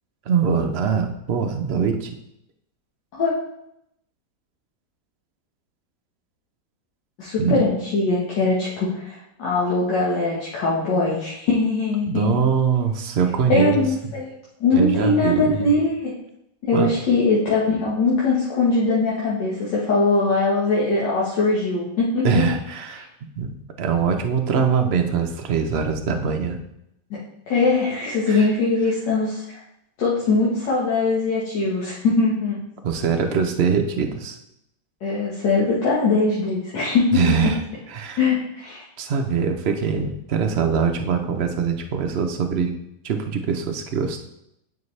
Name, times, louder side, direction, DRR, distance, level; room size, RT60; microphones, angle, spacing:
voice 1, 0.3-2.1 7.4-7.6 12.1-14.1 14.7-15.7 16.7-16.9 22.2-23.1 23.4-26.6 28.3-28.5 32.8-34.4 37.1-37.6 37.9-38.2 39.0-42.7 43.0-44.2, right 6 dB, 60° right, 5 dB, 0.6 m, -23 dB
voice 2, 7.2-12.3 13.5-14.3 14.6-16.1 16.6-22.3 27.5-29.6 30.0-32.6 35.0-37.2 38.2-38.8, left 3 dB, 80° left, -7 dB, 2.0 m, -21 dB
9.5 x 5.1 x 3.2 m, 0.81 s
omnidirectional pair, 1.9 m